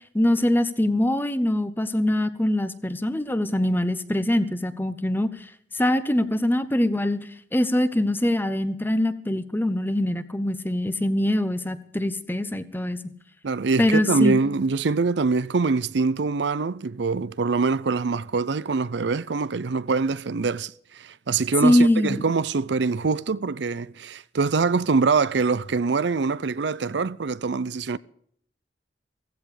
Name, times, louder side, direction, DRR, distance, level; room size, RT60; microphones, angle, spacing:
voice 1, 0.1-5.3 5.7-13.1 13.8-14.4 21.6-22.2, left 1 dB, 10° left, 0.9 m, -23 dB
voice 2, 13.4-28.0, right 4 dB, 70° right, 0.5 m, -24 dB
16.0 x 15.5 x 4.9 m
head